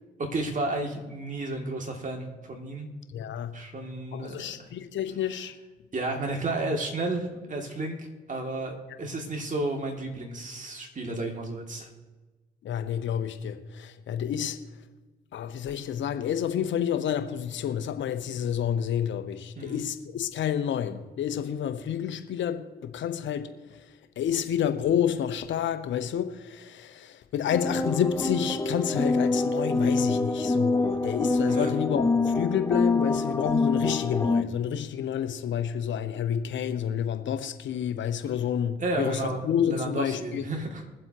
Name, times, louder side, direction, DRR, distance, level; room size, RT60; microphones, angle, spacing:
voice 1, 0.3-2.9 3.5-4.5 5.9-11.9 19.6-19.8 31.5-31.7 38.8-39.4 39.6-40.8, right 2 dB, 40° right, 2.6 m, -32 dB
voice 2, 3.1-3.6 4.1-5.5 12.6-14.6 15.3-23.9 24.2-40.4, left 9 dB, 65° left, 1.0 m, -29 dB
sound 1, 27.5-34.4, left 3 dB, 15° left, 1.0 m, -26 dB
22.5 x 7.7 x 3.0 m
hypercardioid pair, 55°, 21 cm